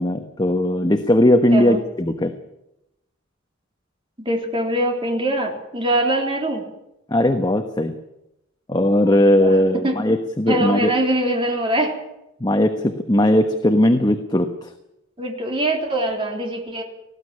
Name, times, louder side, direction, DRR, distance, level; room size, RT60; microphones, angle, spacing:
voice 1, 0.0-2.3 7.1-8.0 8.7-10.9 12.4-14.7, left 1 dB, 20° left, 6 dB, 1.1 m, -18 dB
voice 2, 4.2-6.7 9.4-9.6 9.8-9.9 10.5-11.9 15.2-16.8, right 1 dB, 25° right, 1 dB, 3.5 m, -23 dB
19.5 x 15.5 x 9.8 m, 0.88 s
head